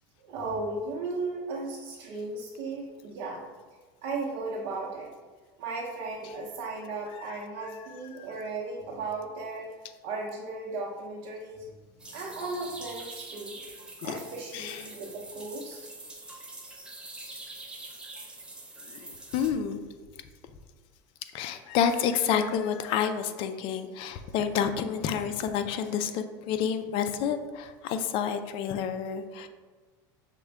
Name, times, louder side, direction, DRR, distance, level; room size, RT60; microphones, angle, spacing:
voice 1, 0.2-3.4 4.0-5.1 5.6-9.7 10.0-13.6 14.0-15.8, right 3 dB, 60° right, -4 dB, 0.7 m, -36 dB
voice 2, 7.2-8.3 14.0-14.2 14.5-15.0 18.8-19.8 21.3-29.5, left 8 dB, 50° left, 9 dB, 0.4 m, -30 dB
sound 1, 12.0-19.5, right 2 dB, 10° right, 0.6 m, -44 dB
5.9 x 2.2 x 3.4 m, 1.4 s
supercardioid pair, 130°, 11 cm